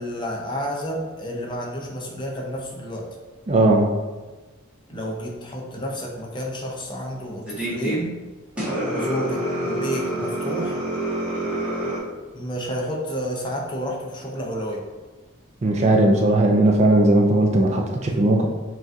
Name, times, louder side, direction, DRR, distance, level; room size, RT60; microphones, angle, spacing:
voice 1, 0.0-3.1 4.9-8.2 8.8-10.8 12.3-14.8, equal, 25° left, -1 dB, 0.6 m, -30 dB
voice 2, 3.5-3.9 15.6-18.5, right 1 dB, 35° right, 2 dB, 0.3 m, -18 dB
sound 1, 7.4-8.0 8.6-12.0, right 1 dB, 5° right, 1.1 m, -27 dB
5.8 x 2.4 x 2.6 m, 1.3 s
head